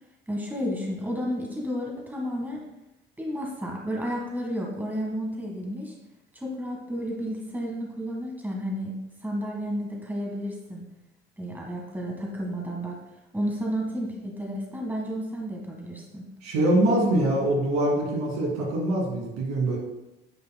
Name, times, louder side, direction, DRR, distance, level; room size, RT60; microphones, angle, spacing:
voice 1, 0.3-2.6 3.2-5.9 6.3-8.9 9.2-10.8 11.4-13.0 13.3-16.2, equal, 5° right, -1 dB, 1.6 m, -32 dB
voice 2, 16.4-19.8, right 1 dB, 65° right, -2 dB, 2.4 m, -24 dB
9.0 x 5.7 x 2.2 m, 0.93 s
hypercardioid pair, 60°, 30 cm